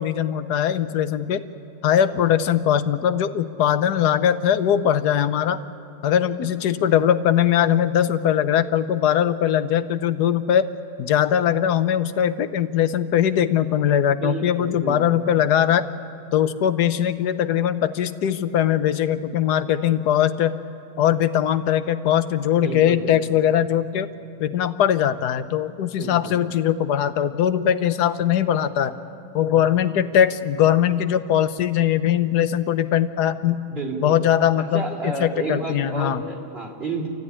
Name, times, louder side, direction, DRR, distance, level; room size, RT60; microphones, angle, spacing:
voice 1, 0.0-1.4 1.8-5.6 6.0-10.7 11.0-15.8 16.3-20.6 21.0-24.1 24.4-28.9 29.3-33.6 34.0-36.2, left 10 dB, 75° left, 11 dB, 1.4 m, -21 dB
voice 2, 14.2-15.2 22.6-23.4 26.0-26.4 29.4-29.7 33.7-34.2 34.7-37.1, right 3 dB, 35° right, 1 dB, 3.3 m, -31 dB
27.5 x 15.0 x 9.9 m, 2.5 s
omnidirectional pair, 1.8 m